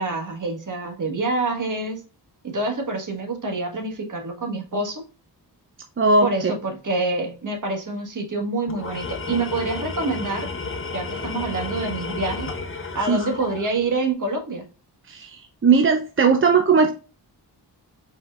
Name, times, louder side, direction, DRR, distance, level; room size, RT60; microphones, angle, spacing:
voice 1, 0.0-2.0 2.4-5.0 6.2-10.5 10.9-12.5 12.9-14.6, right 3 dB, 45° right, 4 dB, 1.5 m, -26 dB
voice 2, 6.0-6.5 13.1-13.2 15.1-16.9, right 4 dB, 30° right, 4 dB, 0.6 m, -18 dB
Tools, 8.7-14.0, left 3 dB, 30° left, 0.8 m, -32 dB
5.0 x 4.3 x 2.4 m, 0.33 s
wide cardioid pair, 120°, 41 cm